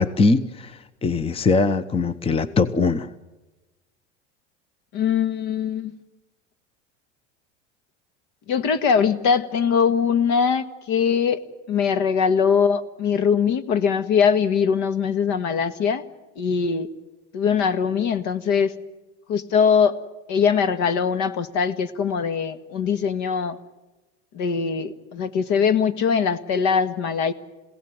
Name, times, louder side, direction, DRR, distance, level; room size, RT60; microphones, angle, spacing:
voice 1, 0.0-3.1, left 4 dB, 15° left, 15 dB, 1.0 m, -21 dB
voice 2, 4.9-5.9 8.5-11.4 11.7-16.0 16.4-16.9 17.3-18.7 19.3-20.0 20.3-23.6 24.3-27.3, left 6 dB, 55° left, 13 dB, 1.8 m, -21 dB
29.5 x 17.0 x 9.6 m, 1.1 s
hypercardioid pair, 105°, 35 cm